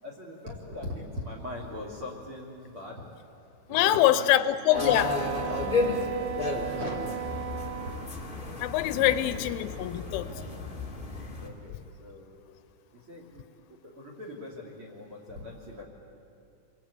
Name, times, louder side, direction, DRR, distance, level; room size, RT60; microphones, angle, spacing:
voice 1, 0.0-3.1 3.7-4.4 6.7-7.3 8.9-9.4 11.4-12.4 12.9-13.4 13.9-15.8, left 2 dB, 30° right, 0 dB, 3.2 m, -41 dB
voice 2, 3.7-5.2 8.6-10.3, left 13 dB, 85° left, 13 dB, 3.3 m, -24 dB
sound 1, 4.7-11.5, left 3 dB, 25° left, 1.1 m, -33 dB
Wind instrument woodwind instrument, 4.7-8.1, right 13 dB, 75° right, 2.8 m, -35 dB
29.5 x 23.0 x 8.5 m, 2.5 s
omnidirectional pair, 5.6 m